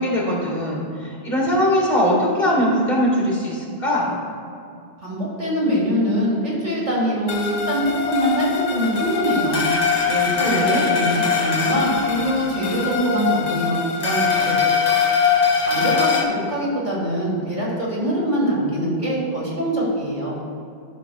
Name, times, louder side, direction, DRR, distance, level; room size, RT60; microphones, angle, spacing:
voice 1, 0.0-4.2 10.4-10.8, equal, 65° left, -6 dB, 2.1 m, -21 dB
voice 2, 5.0-9.7 10.1-14.6 15.7-20.4, equal, 50° right, -5 dB, 2.0 m, -23 dB
sound 1, 7.3-16.2, left 6 dB, 45° left, 0.8 m, -22 dB
12.5 x 5.8 x 2.3 m, 2.5 s
omnidirectional pair, 1.1 m